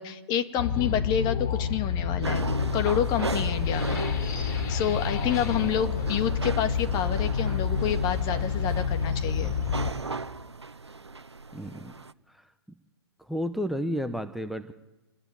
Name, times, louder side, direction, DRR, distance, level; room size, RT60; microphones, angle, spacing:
voice 1, 0.0-2.5 2.7-4.0 4.3-9.5, left 9 dB, 30° left, 8 dB, 1.9 m, -29 dB
sound 1, 0.6-9.9, left 6 dB, 50° left, 3.4 m, -28 dB
sound 2, 2.2-12.1, right 4 dB, 85° right, 0.9 m, -36 dB
voice 2, 11.5-11.9 12.3-12.5 13.2-14.7, equal, ahead, 9 dB, 1.0 m, -32 dB
25.5 x 20.5 x 9.2 m, 1.1 s
figure-of-eight pair, 115°, 14 cm